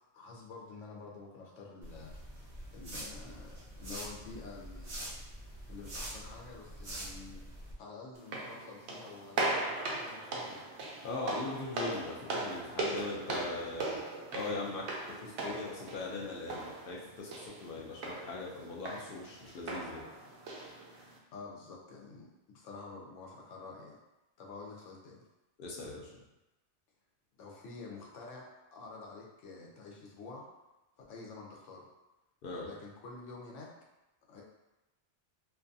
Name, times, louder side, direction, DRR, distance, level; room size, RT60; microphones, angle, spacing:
voice 1, 0.1-2.1 2.7-5.1 5.7-10.7 21.3-24.0 24.4-25.3 27.3-30.5 31.1-31.9 32.6-33.7 34.3-34.4, left 3 dB, 85° left, -2 dB, 1.0 m, -49 dB
sound 1, 1.8-7.7, right 1 dB, 40° right, 0.6 m, -45 dB
sound 2, 8.2-21.2, right 2 dB, 70° right, 0.8 m, -39 dB
voice 2, 11.0-14.0 14.3-14.9 15.2-20.0 25.6-26.2 32.4-32.7, left 3 dB, 60° left, -3 dB, 0.6 m, -40 dB
2.6 x 2.3 x 2.5 m, 1.0 s
omnidirectional pair, 1.2 m